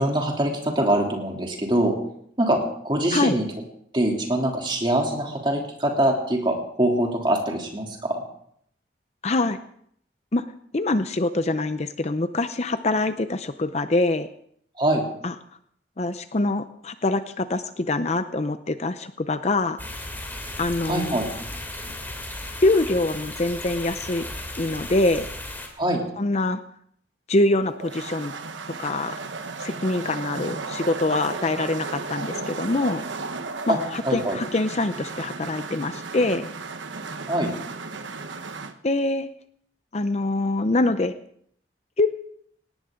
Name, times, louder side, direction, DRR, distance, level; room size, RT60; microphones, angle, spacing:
voice 1, 0.0-2.0 2.4-3.4 3.9-8.2 14.8-15.0 20.9-21.3 25.8-26.0 33.7-33.8 34.0-34.4 37.3-37.5, right 1 dB, 25° right, 1 dB, 3.1 m, -23 dB
voice 2, 9.2-9.6 10.3-10.5 10.7-14.3 15.2-15.3 16.0-19.8 20.6-21.1 22.6-24.2 24.6-25.3 26.2-26.6 27.3-28.3 28.8-29.2 29.6-33.0 33.7-33.8 34.1-36.5 38.8-39.3 39.9-41.1 42.0-42.1, left 2 dB, 35° left, 11 dB, 0.6 m, -24 dB
sound 1, 19.8-25.7, left 1 dB, 10° left, 3.0 m, -35 dB
sound 2, 27.6-38.7, right 4 dB, 80° right, 1.2 m, -35 dB
19.0 x 18.0 x 3.8 m, 0.66 s
head